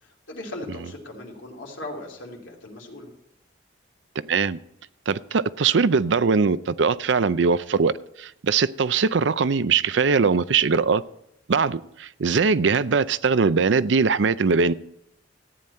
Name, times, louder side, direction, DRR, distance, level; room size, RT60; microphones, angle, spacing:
voice 1, 0.0-3.1, left 1 dB, 90° left, -1 dB, 2.9 m, -38 dB
voice 2, 4.2-4.6 5.1-11.0 11.5-14.7, right 5 dB, 70° right, 16 dB, 0.5 m, -21 dB
14.5 x 9.3 x 4.3 m, 0.80 s
head